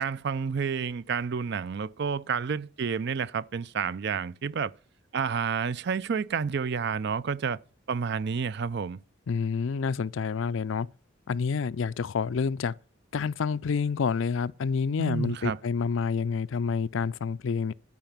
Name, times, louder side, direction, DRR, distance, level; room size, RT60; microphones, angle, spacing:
voice 1, 0.0-4.7 5.1-7.6 7.9-9.0 15.0-15.6, right 6 dB, 55° right, 0.4 m, -30 dB
voice 2, 9.3-10.9 11.3-12.7 13.1-17.7, left 5 dB, 65° left, 0.4 m, -28 dB
12.5 x 4.9 x 7.2 m
head